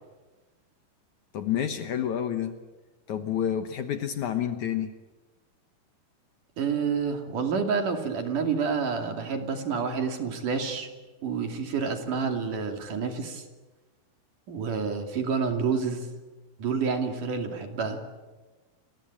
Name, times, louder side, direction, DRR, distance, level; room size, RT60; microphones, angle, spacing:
voice 1, 1.3-2.6 3.1-4.9, left 9 dB, 65° left, 8 dB, 2.2 m, -29 dB
voice 2, 6.6-10.9 11.2-13.4 14.5-16.1 16.6-18.0, right 5 dB, 60° right, 5 dB, 4.1 m, -28 dB
29.5 x 21.5 x 8.8 m, 1.2 s
omnidirectional pair, 4.3 m